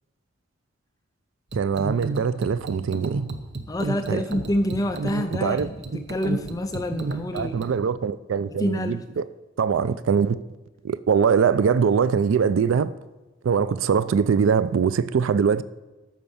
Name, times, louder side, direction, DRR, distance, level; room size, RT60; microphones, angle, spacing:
sound 1, 1.5-7.7, right 3 dB, 60° right, 1.0 m, -32 dB
voice 1, 1.5-3.3 4.1-4.2 5.3-5.7 7.3-9.3 9.6-10.4 10.8-12.9 13.4-15.6, right 6 dB, 80° right, 0.4 m, -22 dB
voice 2, 3.7-7.7 8.6-9.1, left 1 dB, 20° left, 0.4 m, -27 dB
13.5 x 5.4 x 7.0 m
head